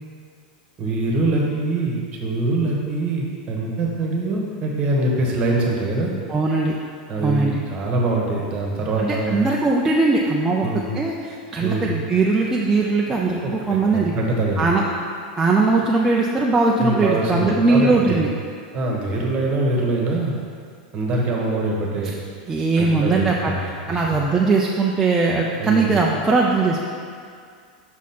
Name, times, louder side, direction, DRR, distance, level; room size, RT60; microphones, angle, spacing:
voice 1, 0.8-6.1 7.1-9.4 10.6-10.9 11.6-11.9 13.4-13.5 13.8-14.7 16.8-18.2 18.7-20.3 20.9-22.1 22.8-23.6 23.9-24.2 25.6-25.9, right 2 dB, 30° right, -1 dB, 1.2 m, -23 dB
voice 2, 6.3-6.7 7.2-7.6 9.0-14.1 14.6-14.8 15.4-18.3 22.5-26.8, right 3 dB, 10° right, -3 dB, 0.4 m, -20 dB
6.2 x 4.1 x 5.9 m, 2.2 s
supercardioid pair, 155°, 5 cm